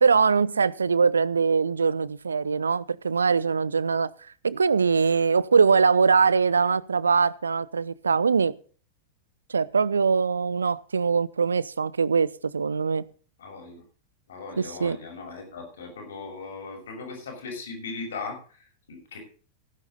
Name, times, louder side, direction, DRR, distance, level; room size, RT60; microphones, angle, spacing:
voice 1, 0.0-8.5 9.5-13.0 14.6-15.0, right 5 dB, 75° right, 0.6 m, -22 dB
voice 2, 13.4-13.8 14.3-19.2, left 4 dB, 65° left, 6.6 m, -38 dB
16.0 x 10.5 x 4.0 m
figure-of-eight pair, 90°, 0 cm